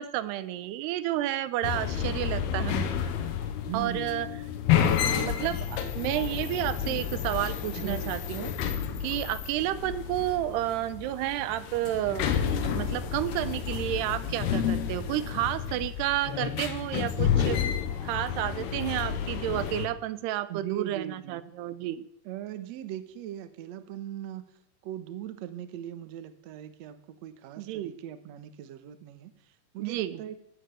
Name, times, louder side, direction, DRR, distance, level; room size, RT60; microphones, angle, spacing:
voice 1, 0.0-2.8 3.7-4.3 4.8-8.5 9.0-12.3 12.6-17.6 18.0-22.1 27.6-27.9 29.8-30.2, right 14 dB, 90° right, 14 dB, 2.9 m, -31 dB
sound 1, 1.6-19.9, left 8 dB, 85° left, 3.3 m, -30 dB
voice 2, 3.7-4.4 7.8-8.2 20.5-21.5 22.3-24.5 24.8-30.4, right 11 dB, 65° right, 10 dB, 1.7 m, -40 dB
16.5 x 11.5 x 6.9 m, 0.78 s
omnidirectional pair, 4.6 m